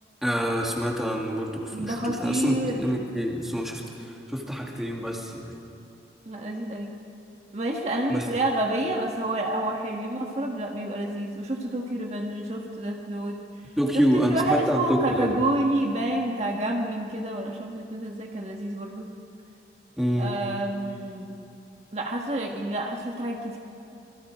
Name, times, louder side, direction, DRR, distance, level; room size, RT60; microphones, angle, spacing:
voice 1, 0.2-5.5 8.1-8.3 13.8-15.4 20.0-20.3, equal, ahead, -1 dB, 2.4 m, -27 dB
voice 2, 1.7-2.8 6.2-6.9 7.5-13.4 14.1-19.1 20.2-21.3 21.9-23.6, right 1 dB, 35° right, 0 dB, 1.6 m, -29 dB
27.0 x 21.5 x 5.0 m, 2.8 s
head